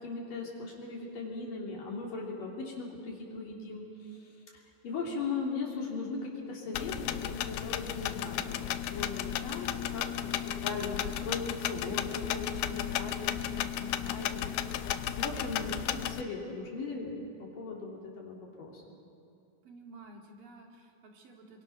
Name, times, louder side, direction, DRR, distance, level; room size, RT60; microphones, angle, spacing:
voice 1, 0.0-3.8 4.1-6.9 7.2-19.0, left 4 dB, 60° left, -2 dB, 4.8 m, -39 dB
sound 1, 6.7-16.2, left 11 dB, 90° left, 2.7 m, -34 dB
voice 2, 19.6-21.6, right 2 dB, 65° right, 1 dB, 4.0 m, -52 dB
28.5 x 23.5 x 6.0 m, 2.7 s
omnidirectional pair, 4.4 m